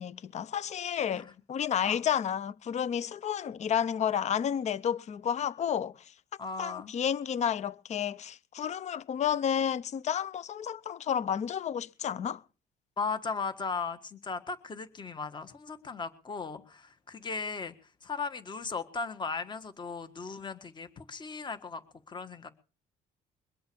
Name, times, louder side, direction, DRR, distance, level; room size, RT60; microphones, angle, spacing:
voice 1, 0.0-5.9 6.6-12.4, left 8 dB, 45° left, 0.7 m, -31 dB
voice 2, 6.4-6.9 13.0-22.5, left 4 dB, 25° left, 1.6 m, -37 dB
22.5 x 7.8 x 6.9 m
cardioid pair, 110°, 17 cm